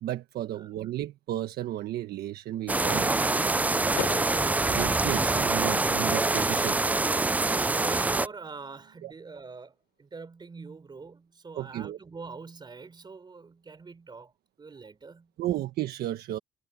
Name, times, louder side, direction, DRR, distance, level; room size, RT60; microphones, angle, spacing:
voice 1, 0.0-3.4 4.7-6.8 9.0-9.1 11.5-12.0 15.4-16.4, right 13 dB, 70° right, 1.4 m, -33 dB
sound 1, 2.7-8.3, right 3 dB, 10° right, 0.3 m, -25 dB
Bass guitar, 2.9-9.1, right 17 dB, 85° right, 6.9 m, -53 dB
Car / Door, 3.9-5.9, left 13 dB, 70° left, 3.5 m, -39 dB
voice 2, 7.4-14.3 14.6-15.3, right 4 dB, 25° right, 3.6 m, -44 dB
cardioid pair, 110°, 17 cm